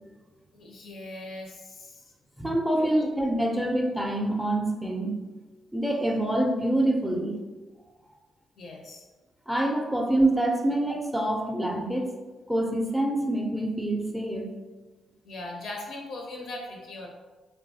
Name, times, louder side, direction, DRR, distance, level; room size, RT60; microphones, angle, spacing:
voice 1, 0.5-2.0 2.7-3.1 8.6-9.0 15.2-17.1, left 2 dB, 70° left, 0 dB, 0.4 m, -39 dB
voice 2, 2.4-5.1 5.7-7.4 9.5-12.1 12.5-14.5, right 1 dB, 5° right, 1 dB, 0.4 m, -26 dB
2.6 x 2.3 x 2.6 m, 1.2 s
supercardioid pair, 55°, 0 cm